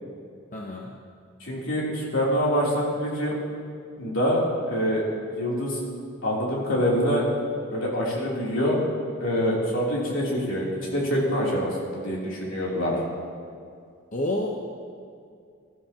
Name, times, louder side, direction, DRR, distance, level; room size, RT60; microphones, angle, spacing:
voice 1, 0.5-0.9 14.1-14.5, left 1 dB, 35° left, -1 dB, 0.9 m, -28 dB
voice 2, 1.4-3.3 4.0-5.0 5.3-5.8 6.2-7.2 7.7-8.8 9.2-13.0, equal, 65° left, -5 dB, 3.3 m, -25 dB
18.5 x 13.0 x 2.9 m, 2.3 s
head